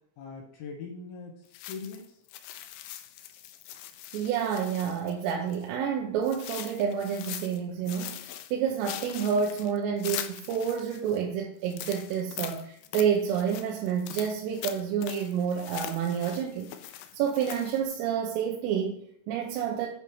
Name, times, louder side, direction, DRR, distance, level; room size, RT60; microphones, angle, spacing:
voice 1, 0.2-2.2, left 4 dB, 70° left, 3.5 m, -41 dB
sound 1, 1.5-5.7 6.2-7.6 7.9-11.2 11.6-17.8, left 12 dB, 90° left, 2.5 m, -42 dB
voice 2, 4.1-16.7 17.1-19.9, right 7 dB, 85° right, 3.4 m, -29 dB
8.8 x 5.5 x 4.7 m
omnidirectional pair, 5.9 m